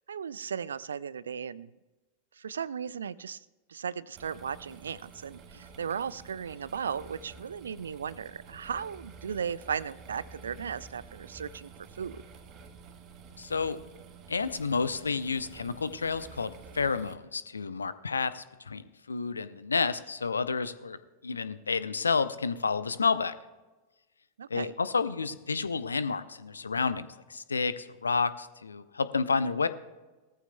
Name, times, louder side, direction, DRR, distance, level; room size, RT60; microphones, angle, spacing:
voice 1, 0.1-1.7 2.4-3.4 3.7-11.7 12.0-12.2 24.4-24.7, right 7 dB, 70° right, 20 dB, 0.4 m, -36 dB
sound 1, 4.1-17.1, right 5 dB, 35° right, 1.5 m, -50 dB
voice 2, 13.4-13.8 14.3-23.3 24.5-29.7, left 4 dB, 75° left, 14 dB, 0.6 m, -30 dB
19.5 x 14.0 x 2.2 m, 1.2 s
figure-of-eight pair, 90°, 0 cm